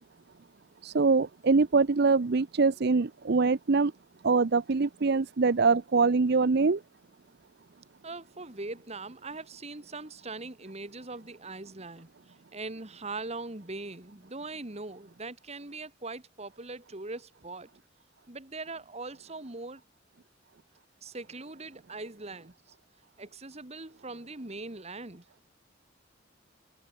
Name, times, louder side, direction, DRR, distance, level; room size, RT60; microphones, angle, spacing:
voice 1, 0.8-3.9 4.2-6.8, right 4 dB, 55° right, 0.6 m, -24 dB
voice 2, 8.0-12.1 12.5-17.7 18.3-19.8 21.0-22.5 23.2-25.2, right 3 dB, 35° right, 2.2 m, -41 dB
head